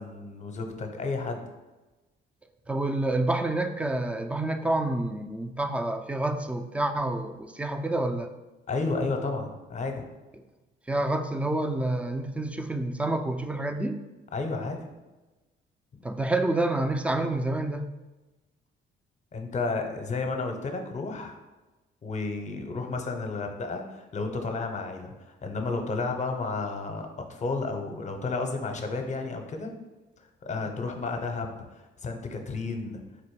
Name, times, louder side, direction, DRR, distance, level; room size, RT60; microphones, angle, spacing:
voice 1, 0.0-1.4 8.7-10.1 14.3-14.8 15.9-16.0 19.3-21.4 22.0-29.7 30.4-33.0, left 3 dB, 35° left, 4 dB, 0.7 m, -32 dB
voice 2, 2.7-8.3 10.9-14.0 16.0-17.9, right 2 dB, 5° right, 7 dB, 0.3 m, -28 dB
4.1 x 2.6 x 4.6 m, 1.1 s
cardioid pair, 90°, 20 cm